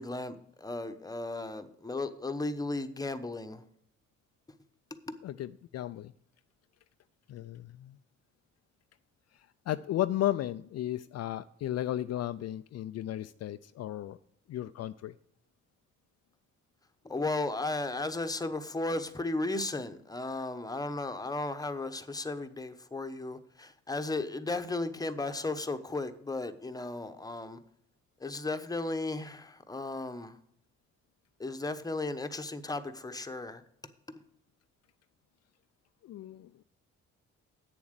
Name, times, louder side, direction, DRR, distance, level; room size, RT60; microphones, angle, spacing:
voice 1, 0.0-3.6 5.1-5.2 17.0-27.6 28.2-30.4 31.4-33.6, left 2 dB, 10° left, 8 dB, 1.0 m, -35 dB
voice 2, 5.2-6.1 7.3-8.0 9.7-14.2 14.5-15.1 36.0-36.5, left 13 dB, 55° left, 12 dB, 0.4 m, -34 dB
8.5 x 7.2 x 6.6 m, 0.71 s
cardioid pair, 90°, 30 cm